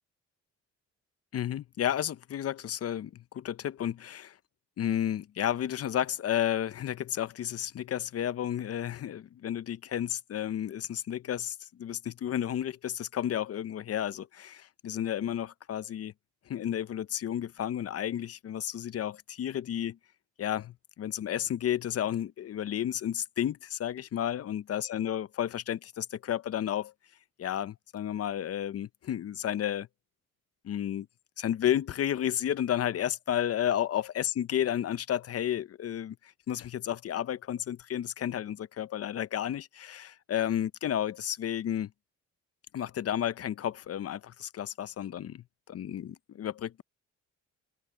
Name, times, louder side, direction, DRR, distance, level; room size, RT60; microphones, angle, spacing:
voice 1, 1.3-4.4 4.8-16.1 16.5-20.0 20.4-26.9 27.4-29.9 30.6-31.1 31.4-41.9 42.7-46.8, left 10 dB, 50° left, 0.7 m, -32 dB
cardioid pair, 90°, 30 cm